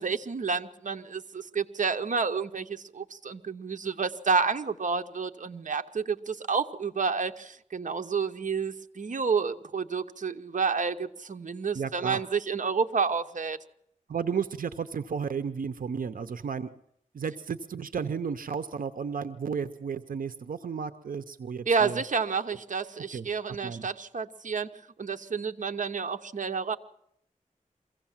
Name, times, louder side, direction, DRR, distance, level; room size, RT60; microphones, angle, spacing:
voice 1, 0.0-13.6 21.7-24.7 25.0-26.8, right 5 dB, 65° right, 7 dB, 1.0 m, -30 dB
voice 2, 11.7-12.2 14.1-16.7 17.1-22.0 23.1-23.9, right 6 dB, 85° right, 10 dB, 0.7 m, -33 dB
23.5 x 16.0 x 7.3 m, 0.73 s
wide cardioid pair, 75°, 14 cm